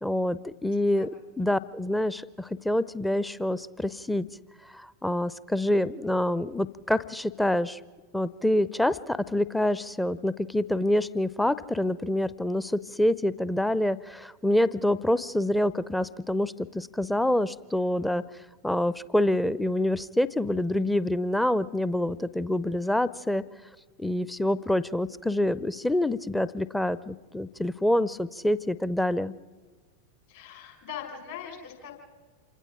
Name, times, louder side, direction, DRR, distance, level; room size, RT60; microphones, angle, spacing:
voice 1, 0.0-1.1 1.4-4.3 4.7-7.8 8.1-18.2 18.6-23.4 24.0-29.3, left 1 dB, 5° left, 17 dB, 0.6 m, -26 dB
voice 2, 30.3-32.0, left 8 dB, 55° left, 2 dB, 5.3 m, -41 dB
28.0 x 25.5 x 3.8 m, 1.4 s
figure-of-eight pair, 90°, 0 cm